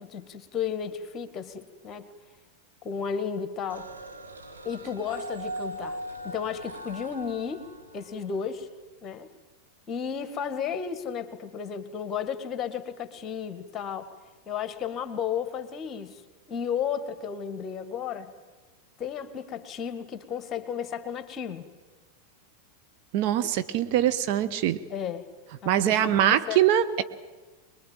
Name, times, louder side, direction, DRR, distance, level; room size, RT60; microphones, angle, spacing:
voice 1, 0.0-2.1 2.8-3.9 4.6-6.0 6.2-7.7 7.9-8.7 9.0-9.3 9.9-14.1 14.4-16.2 16.5-18.3 19.0-21.6 24.9-25.3 25.6-26.6, left 7 dB, 25° left, 10 dB, 1.8 m, -33 dB
sound 1, 3.7-8.6, right 1 dB, 75° right, 2.3 m, -40 dB
voice 2, 23.1-24.8 25.6-27.0, right 11 dB, 45° right, 9 dB, 1.0 m, -23 dB
24.0 x 21.5 x 9.0 m, 1.3 s
figure-of-eight pair, 90°, 0 cm